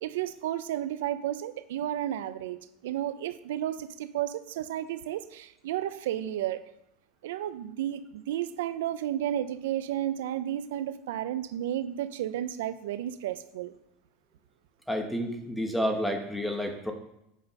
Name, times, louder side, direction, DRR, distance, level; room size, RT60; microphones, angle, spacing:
voice 1, 0.0-6.6 7.2-13.7, right 12 dB, 85° right, 13 dB, 0.6 m, -32 dB
voice 2, 14.9-16.9, equal, ahead, 4 dB, 1.2 m, -30 dB
8.5 x 5.2 x 5.3 m, 0.81 s
supercardioid pair, 130°, 0 cm